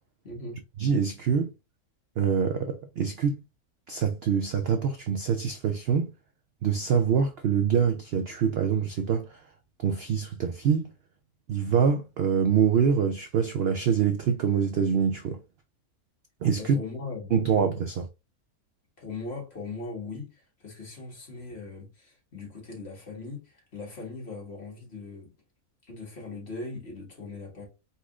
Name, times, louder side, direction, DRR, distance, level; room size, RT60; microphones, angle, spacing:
voice 1, 0.2-0.6 16.6-17.5 19.0-25.3 25.9-27.6, left 3 dB, 45° left, 2.0 m, -39 dB
voice 2, 0.8-1.5 2.2-3.4 3.9-6.1 6.6-9.4 9.8-10.9 11.5-15.4 16.4-16.8 17.3-18.1, right 7 dB, 70° right, 0.5 m, -25 dB
4.7 x 4.1 x 2.4 m
omnidirectional pair, 1.6 m